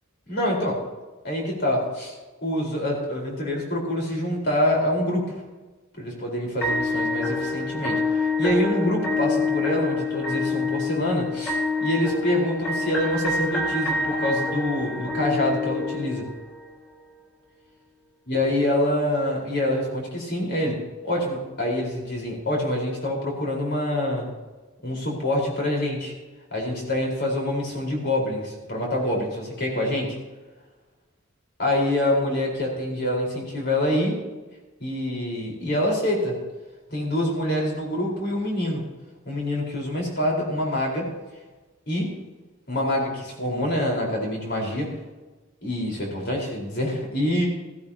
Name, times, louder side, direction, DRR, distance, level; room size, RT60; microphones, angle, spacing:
voice 1, 0.3-0.8 1.2-2.1 2.4-5.3 5.9-16.3 18.3-20.8 21.0-24.3 24.8-26.1 26.5-30.2 31.6-34.2 34.8-36.4 36.9-38.8 39.2-41.1 41.9-42.1 42.7-44.9 45.6-47.5, left 1 dB, 55° left, -2 dB, 4.4 m, -26 dB
sound 1, 6.6-16.6, left 3 dB, 10° left, 3.6 m, -26 dB
16.0 x 14.5 x 2.9 m, 1.2 s
head